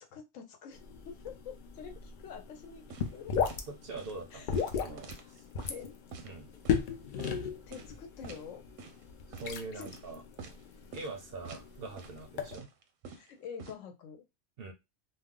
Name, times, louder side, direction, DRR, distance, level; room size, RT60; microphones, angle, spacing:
voice 1, 0.1-2.8 3.1-3.6 4.3-4.5 4.9-5.4 5.7-5.9 7.7-8.6 9.7-10.0 13.1-14.2, left 7 dB, 80° left, 5 dB, 1.0 m, -47 dB
sound 1, 0.7-12.6, left 7 dB, 65° left, 0.5 m, -37 dB
sound 2, 2.9-3.2 3.4-3.6 4.0-4.2 4.5-5.8 6.1-6.3 6.6-6.8 7.2-7.4 7.7-8.0 8.2-8.4 8.8-9.0 9.3-9.5 9.9-10.0 10.4-10.6 10.9-11.1 11.4-11.7 12.0-12.2 12.5-13.7, right 5 dB, 85° right, 0.9 m, -47 dB
voice 2, 3.7-4.5 4.8-5.1 5.4-5.5 6.2-6.5 9.3-10.2 10.9-12.7 14.6-14.7, right 3 dB, 65° right, 5 dB, 0.6 m, -43 dB
2.3 x 2.1 x 3.6 m, 0.23 s
omnidirectional pair, 1.3 m